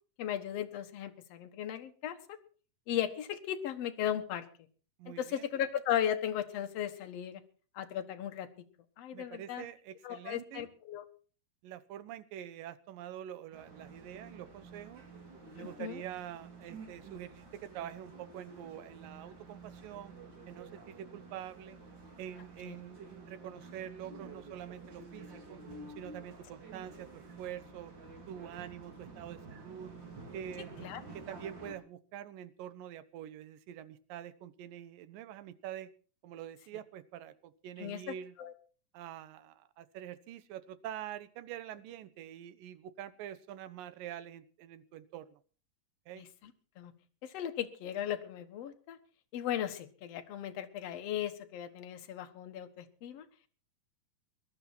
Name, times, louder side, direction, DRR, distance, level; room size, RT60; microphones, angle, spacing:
voice 1, 0.2-2.2 2.9-4.5 5.1-7.4 7.7-8.5 9.0-9.6 10.0-11.0 15.6-16.0 22.7-22.8 30.8-31.0 37.8-38.0 38.4-38.5 46.2-46.5 46.8-46.9 47.2-49.0 49.3-53.3, left 10 dB, 55° left, 8 dB, 2.0 m, -36 dB
voice 2, 5.0-5.5 9.1-10.7 11.6-15.0 15.6-20.2 20.5-21.8 22.2-25.6 26.0-27.9 28.3-29.9 30.3-35.9 36.2-38.4 38.9-45.4 46.1-46.3, right 10 dB, 75° right, 14 dB, 2.6 m, -46 dB
sound 1, 13.5-31.7, right 3 dB, 35° right, 3.4 m, -50 dB
20.5 x 12.0 x 4.4 m, 0.41 s
omnidirectional pair, 4.1 m